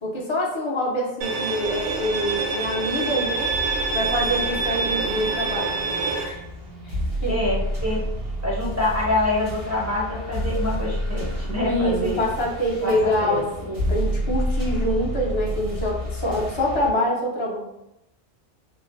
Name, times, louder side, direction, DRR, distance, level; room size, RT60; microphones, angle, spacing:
voice 1, 0.0-3.5 3.9-5.9 6.2-6.4 6.8-7.4 11.6-17.6, equal, 35° left, -3 dB, 0.5 m, -25 dB
Bowed string instrument, 1.2-6.2, right 4 dB, 60° right, 0.6 m, -26 dB
sound 1, 1.6-16.9, equal, 90° right, 1.6 m, -30 dB
voice 2, 7.3-8.0 8.4-12.2 12.8-13.4, left 2 dB, 20° right, -6 dB, 0.6 m, -26 dB
3.1 x 2.1 x 2.5 m, 0.87 s
omnidirectional pair, 1.2 m